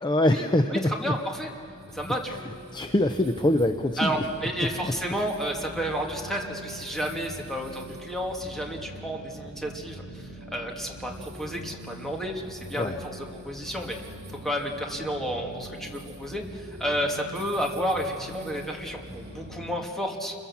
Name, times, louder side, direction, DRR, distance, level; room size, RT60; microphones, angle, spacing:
voice 1, 0.0-1.1 2.3-4.3 4.6-4.9 12.8-13.0, left 1 dB, 20° left, 7 dB, 0.6 m, -25 dB
sound 1, 0.7-19.9, right 1 dB, 50° right, 2.8 m, -43 dB
voice 2, 1.0-1.5 1.9-2.4 4.0-14.0 14.4-20.3, equal, ahead, 0 dB, 2.2 m, -31 dB
28.0 x 22.5 x 7.3 m, 2.4 s
head